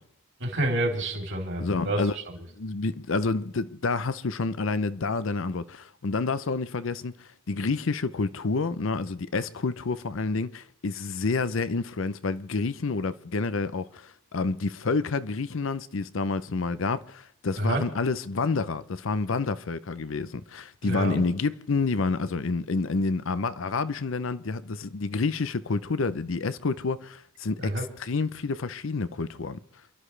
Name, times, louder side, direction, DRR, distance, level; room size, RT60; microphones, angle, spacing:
voice 1, 0.4-2.2 17.6-17.8 20.8-21.2 27.6-27.8, right 1 dB, 60° right, 3.4 m, -28 dB
voice 2, 1.6-2.2 2.6-29.6, left 3 dB, 65° left, 0.6 m, -29 dB
28.5 x 12.0 x 3.3 m
head